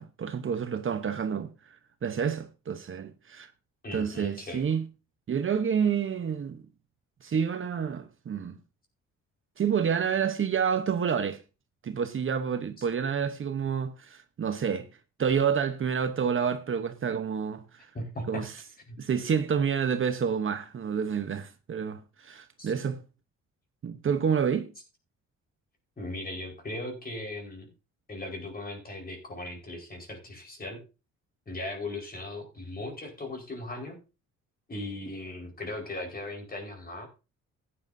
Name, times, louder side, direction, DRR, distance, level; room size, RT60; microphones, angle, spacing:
voice 1, 0.0-1.5 2.0-3.5 3.9-4.8 5.3-6.6 7.2-8.6 9.6-11.4 11.8-14.9 15.2-17.9 18.3-18.5 19.0-23.0 23.8-24.7, right 7 dB, 45° right, 1.0 m, -29 dB
voice 2, 3.8-4.6 12.8-12.9 17.9-18.4 18.9-19.0 22.6-22.7 26.0-27.7 28.1-30.8 31.5-34.0 34.7-37.1, left 2 dB, 30° left, 4.8 m, -38 dB
15.0 x 9.9 x 2.7 m
cardioid pair, 90°, 30 cm